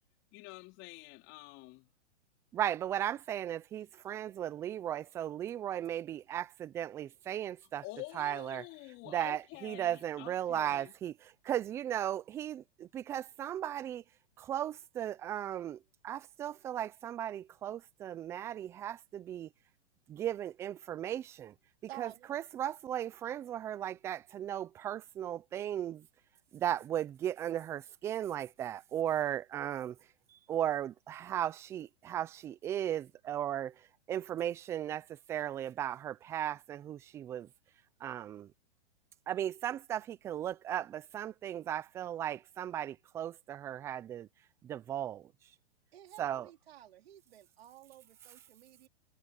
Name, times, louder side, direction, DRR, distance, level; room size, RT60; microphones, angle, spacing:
voice 1, 0.3-1.9 7.8-10.9, left 22 dB, 35° left, 3.9 m, -48 dB
voice 2, 2.5-7.8 8.2-8.6 9.1-11.1 11.4-14.0 14.4-15.8 16.0-19.5 20.1-21.5 22.0-26.0 26.5-30.0 30.5-33.7 34.1-37.5 38.0-38.5 39.3-44.3 44.6-45.2 46.2-46.5, right 11 dB, 10° right, 0.3 m, -36 dB
voice 3, 21.9-22.3 45.9-48.9, right 13 dB, 65° right, 4.0 m, -52 dB
hypercardioid pair, 125°, 33 cm